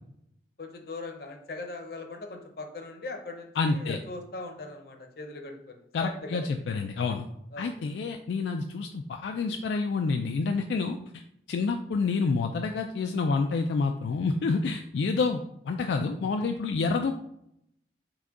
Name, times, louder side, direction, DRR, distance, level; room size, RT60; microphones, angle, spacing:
voice 1, 0.6-6.4 7.5-7.9, left 2 dB, 60° left, 4 dB, 0.7 m, -40 dB
voice 2, 3.6-4.0 5.9-7.3 7.6-11.2 11.5-17.1, left 4 dB, 80° left, 4 dB, 0.3 m, -28 dB
6.0 x 2.2 x 3.7 m, 0.76 s
head